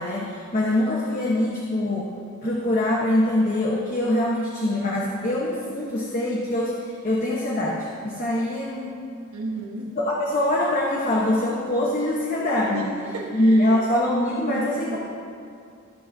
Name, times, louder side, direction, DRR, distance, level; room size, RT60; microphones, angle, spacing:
voice 1, 0.0-2.1 2.4-9.0 10.0-12.8 13.3-15.0, left 1 dB, 40° left, -4 dB, 1.1 m, -23 dB
voice 2, 9.3-9.9 12.7-13.8 14.8-15.0, right 2 dB, 85° right, 0 dB, 1.2 m, -33 dB
21.5 x 7.6 x 2.7 m, 2.4 s
head